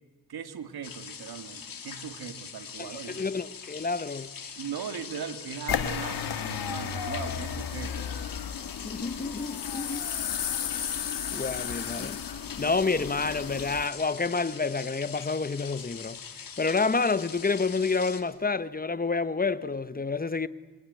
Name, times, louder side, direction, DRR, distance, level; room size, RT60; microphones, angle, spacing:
voice 1, 0.3-3.2 4.6-8.1, right 7 dB, 90° right, 2.0 m, -39 dB
sound 1, 0.8-18.2, left 6 dB, 65° left, 2.4 m, -43 dB
voice 2, 2.8-4.3 8.8-10.0 11.3-12.2 12.6-16.2 16.6-20.5, left 4 dB, 25° left, 0.9 m, -29 dB
sound 2, 5.7-13.9, left 8 dB, 85° left, 1.6 m, -33 dB
27.0 x 22.5 x 9.3 m
wide cardioid pair, 95°, 36 cm